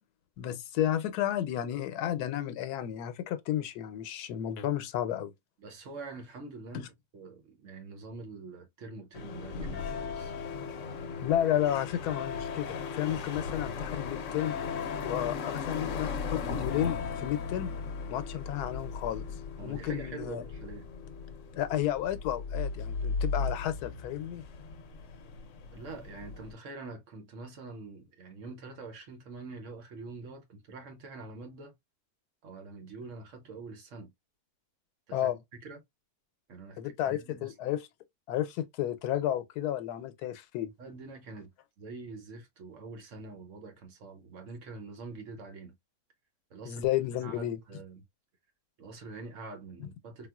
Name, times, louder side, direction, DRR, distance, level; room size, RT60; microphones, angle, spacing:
voice 1, 0.4-5.3 11.2-14.6 15.0-17.7 18.1-19.2 19.6-20.4 21.5-24.4 35.1-35.4 36.8-37.8 38.3-40.7 46.6-47.6, left 11 dB, 90° left, 1.1 m, -32 dB
voice 2, 5.6-10.3 19.6-20.8 25.7-31.7 32.4-34.1 35.1-35.8 36.5-37.5 40.8-41.5 41.8-45.7 46.5-46.8 47.2-48.0 48.8-50.3, right 3 dB, 60° right, 1.0 m, -45 dB
sound 1, 9.1-26.5, left 5 dB, 65° left, 0.9 m, -37 dB
3.7 x 2.3 x 2.3 m
omnidirectional pair, 1.6 m